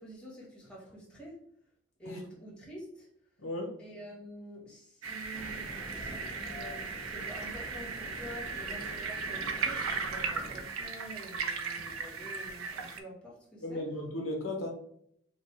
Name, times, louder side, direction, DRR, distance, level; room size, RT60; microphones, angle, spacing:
voice 1, 0.0-1.4 2.0-3.1 3.8-13.8, equal, 5° left, -6 dB, 1.5 m, -48 dB
voice 2, 3.4-3.7 13.6-14.7, left 1 dB, 70° left, 1 dB, 1.0 m, -35 dB
sound 1, 5.0-13.0, right 5 dB, 80° right, 0.6 m, -37 dB
sound 2, 5.3-10.6, left 1 dB, 40° left, 0.9 m, -46 dB
5.3 x 2.4 x 3.3 m, 0.70 s
head